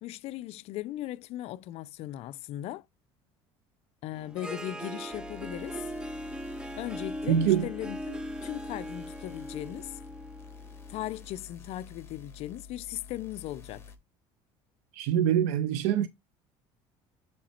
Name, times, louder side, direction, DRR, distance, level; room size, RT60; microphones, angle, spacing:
voice 1, 0.0-2.8 4.0-5.8 6.8-10.0 10.9-13.9, left 14 dB, 60° left, 0.4 m, -38 dB
Harp, 4.1-11.2, equal, 5° right, 0.5 m, -39 dB
sound 1, 5.1-14.0, left 6 dB, 20° left, 1.4 m, -49 dB
voice 2, 7.3-7.7 14.9-16.1, right 10 dB, 85° right, 0.5 m, -24 dB
7.1 x 3.2 x 4.2 m
cardioid pair, 115°, 12 cm